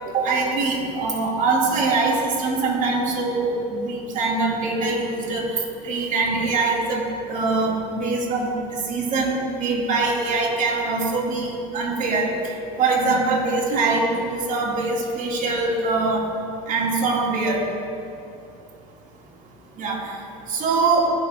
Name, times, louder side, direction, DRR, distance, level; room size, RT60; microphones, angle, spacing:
voice 1, 0.1-16.3 16.7-17.7 19.8-20.1 20.5-21.1, right 3 dB, 50° right, -2 dB, 2.5 m, -23 dB
16.0 x 5.9 x 3.7 m, 2.6 s
supercardioid pair, 85°, 17 cm